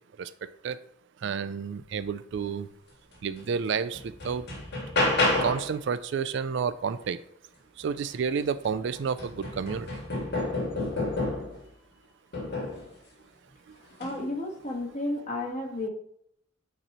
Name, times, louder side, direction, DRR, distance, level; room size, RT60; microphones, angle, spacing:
voice 1, 1.2-2.7 3.2-4.5 5.4-7.2 7.8-9.9, right 6 dB, 60° right, 13 dB, 0.3 m, -30 dB
sound 1, 3.4-3.5 3.9-5.8 8.1-8.2 8.6-11.6 12.3-12.9 13.9-14.2, left 2 dB, 55° left, 1.7 m, -29 dB
voice 2, 14.0-15.9, left 1 dB, 35° left, -1 dB, 1.5 m, -32 dB
9.1 x 3.1 x 4.3 m, 0.71 s
head